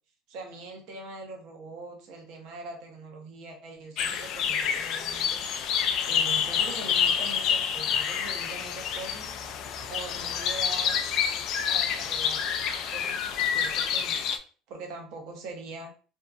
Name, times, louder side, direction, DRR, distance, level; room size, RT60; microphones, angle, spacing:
voice 1, 0.3-5.4 6.1-9.6 9.9-11.0 11.7-12.4 12.7-14.2 14.7-15.9, right 3 dB, 60° right, 2 dB, 0.8 m, -42 dB
sound 1, 4.0-14.4, left 7 dB, 55° left, 0.3 m, -28 dB
2.7 x 2.4 x 2.3 m, 0.39 s
cardioid pair, 135°, 0 cm